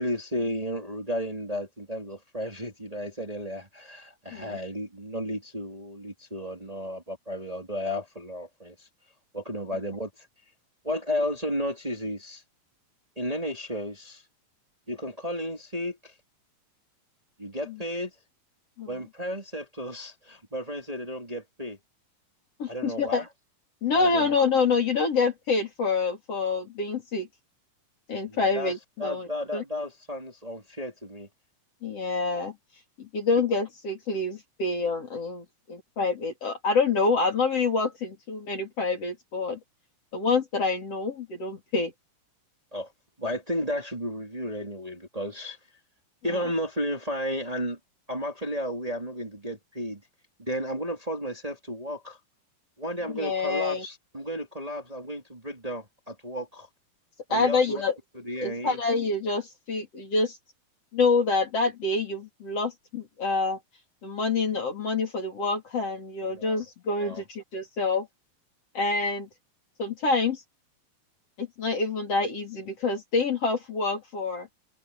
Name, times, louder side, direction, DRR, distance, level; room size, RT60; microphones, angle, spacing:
voice 1, 0.0-8.9 9.3-10.1 10.8-12.4 13.2-14.2 14.9-16.1 17.4-18.1 18.9-21.8 22.7-23.3 23.9-24.4 28.3-28.7 29.0-31.3 42.7-42.9 43.2-45.6 46.2-47.8 48.1-50.0 50.4-52.2 52.8-56.7 57.3-57.8 58.1-58.8 66.3-66.6 67.0-67.2, equal, 10° right, 3.5 m, -33 dB
voice 2, 22.6-23.3 23.8-27.3 28.1-29.6 31.8-32.5 33.0-39.6 40.1-41.9 53.1-53.8 57.3-57.9 58.4-60.4 60.9-63.6 64.0-68.1 68.7-69.3 69.8-70.4 71.4-74.5, left 4 dB, 45° left, 4.4 m, -27 dB
omnidirectional pair, 4.1 m